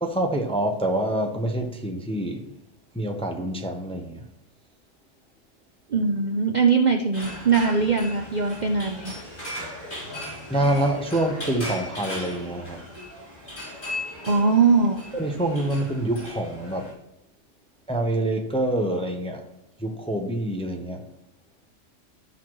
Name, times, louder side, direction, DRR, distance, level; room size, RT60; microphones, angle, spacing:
voice 1, 0.0-2.5 3.0-4.2 10.5-12.8 15.1-16.9 17.9-19.4 19.8-21.0, right 1 dB, 5° left, 0.5 m, -26 dB
voice 2, 5.9-9.1 14.2-15.0, right 5 dB, 55° right, 0.5 m, -21 dB
sound 1, 7.1-16.9, left 1 dB, 40° left, 3.7 m, -37 dB
13.5 x 5.9 x 3.1 m
omnidirectional pair, 1.3 m